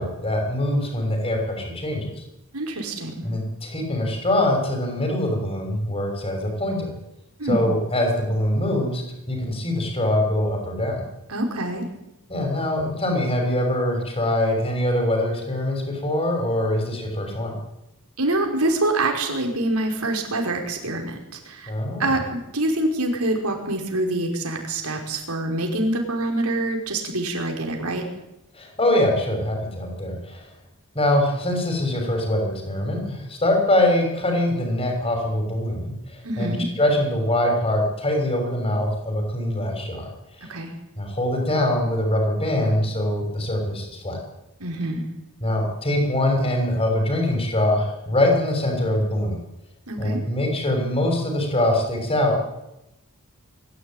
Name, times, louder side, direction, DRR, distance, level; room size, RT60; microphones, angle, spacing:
voice 1, 0.0-2.2 3.2-6.9 7.4-11.0 12.3-17.5 21.7-22.1 28.5-30.5 30.9-40.1 40.4-40.5 41.0-44.2 45.4-49.4 50.0-52.4, left 1 dB, 25° left, 3 dB, 6.5 m, -23 dB
voice 2, 2.5-3.3 7.4-7.6 11.3-11.9 18.2-21.2 21.5-21.7 22.0-28.0 36.2-36.7 40.5-40.7 44.6-45.0 49.9-50.2, right 1 dB, 85° right, 2 dB, 5.5 m, -25 dB
23.5 x 15.0 x 9.4 m, 0.90 s
head